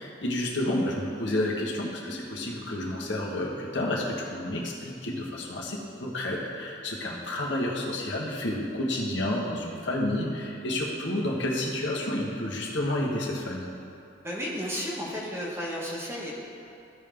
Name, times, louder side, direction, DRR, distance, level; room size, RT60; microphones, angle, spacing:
voice 1, 0.0-13.7, left 1 dB, 70° left, -3 dB, 1.3 m, -30 dB
voice 2, 14.2-16.3, equal, 15° right, -4 dB, 1.1 m, -33 dB
14.5 x 5.3 x 3.4 m, 2.7 s
head